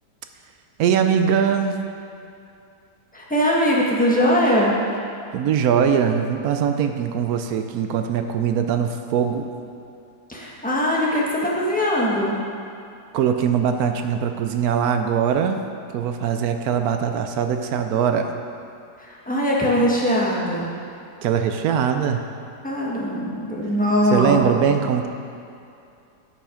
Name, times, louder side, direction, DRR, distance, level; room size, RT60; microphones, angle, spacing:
voice 1, 0.8-1.8 5.3-9.5 13.1-15.6 15.9-18.3 21.2-22.2 24.1-25.1, right 7 dB, 70° right, 7 dB, 1.0 m, -21 dB
voice 2, 3.1-4.7 10.3-12.4 19.0-20.7 22.6-24.4, equal, 5° left, -5 dB, 1.1 m, -21 dB
8.9 x 5.9 x 5.0 m, 2.6 s
omnidirectional pair, 1.8 m